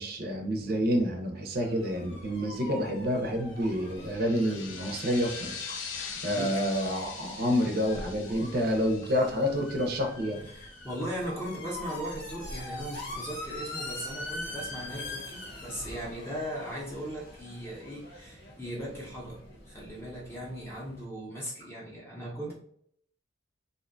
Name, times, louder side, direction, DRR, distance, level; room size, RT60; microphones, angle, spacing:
voice 1, 0.0-5.8 6.2-10.5, equal, 50° right, 2 dB, 0.6 m, -28 dB
sound 1, 1.6-21.0, left 1 dB, 55° left, 0.8 m, -43 dB
sound 2, 4.0-10.3, left 5 dB, 75° left, 0.5 m, -42 dB
voice 2, 6.0-6.6 10.4-22.5, equal, 15° left, -5 dB, 0.6 m, -38 dB
2.6 x 2.2 x 2.5 m, 0.67 s
head